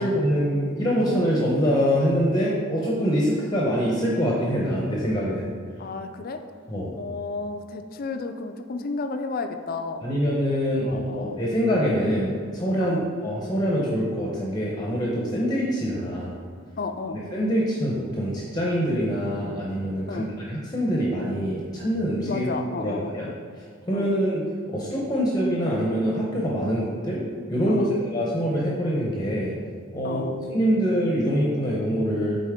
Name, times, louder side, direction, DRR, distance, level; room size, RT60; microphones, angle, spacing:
voice 1, 0.0-5.5 6.7-6.9 10.0-16.3 17.1-22.5 22.8-23.3 23.9-24.4 24.7-27.2 27.5-29.5 29.9-30.2 30.5-32.4, equal, 20° left, -4 dB, 0.7 m, -24 dB
voice 2, 5.8-6.4 6.9-10.0 10.8-11.4 12.8-13.1 16.8-17.2 20.1-20.3 22.3-23.3 23.9-24.1 27.7-27.9 30.0-30.4, left 4 dB, 45° left, 7 dB, 0.4 m, -32 dB
8.1 x 4.1 x 3.6 m, 2.2 s
head